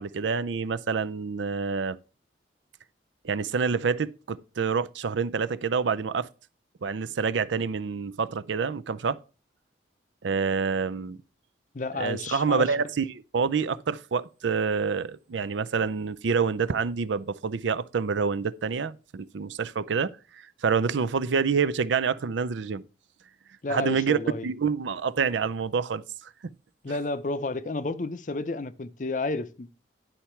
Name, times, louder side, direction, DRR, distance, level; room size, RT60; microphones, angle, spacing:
voice 1, 0.0-2.0 3.2-6.3 6.8-9.2 10.2-11.2 11.9-22.8 23.7-24.2 24.4-26.0 26.4-26.5, right 5 dB, 80° right, 0.5 m, -27 dB
voice 2, 11.7-12.7 23.6-24.5 26.8-29.7, left 3 dB, 40° left, 0.5 m, -31 dB
10.0 x 5.7 x 4.4 m
head